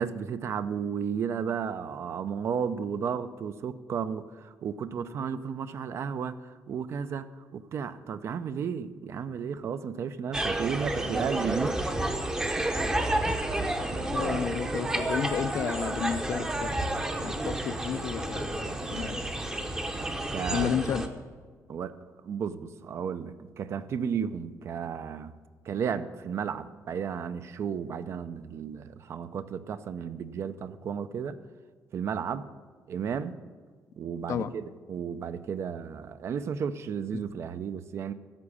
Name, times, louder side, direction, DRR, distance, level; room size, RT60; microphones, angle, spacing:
voice 1, 0.0-7.3 7.5-11.8 13.9-14.4 20.3-20.8 21.7-22.0 22.2-25.3 25.7-31.4 31.9-32.4 32.9-33.4 34.0-38.1, right 7 dB, 45° right, 12 dB, 0.5 m, -33 dB
sound 1, 10.3-21.1, right 1 dB, 10° right, 0.8 m, -30 dB
voice 2, 14.1-16.8 17.2-19.2 20.5-21.0 34.3-34.5 37.1-37.2, left 8 dB, 55° left, 13 dB, 0.5 m, -32 dB
11.5 x 7.3 x 8.6 m, 1.6 s
cardioid pair, 175°, 6 cm